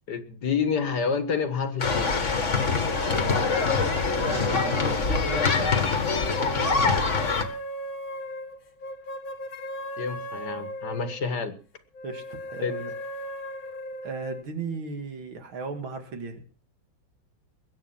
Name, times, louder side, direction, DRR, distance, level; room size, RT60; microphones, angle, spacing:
voice 1, 0.1-2.1 10.0-11.6 12.6-12.7, left 5 dB, 55° left, 10 dB, 2.0 m, -28 dB
sound 1, 1.8-7.4, left 4 dB, 40° left, 2.0 m, -24 dB
sound 2, 2.9-5.6 6.2-11.4 11.9-14.4, equal, 80° left, 2.4 m, -37 dB
voice 2, 4.2-5.7 6.3-7.0 12.0-12.9 14.0-16.4, right 4 dB, 85° right, 7 dB, 2.8 m, -36 dB
21.5 x 9.0 x 5.9 m, 0.39 s
omnidirectional pair, 2.1 m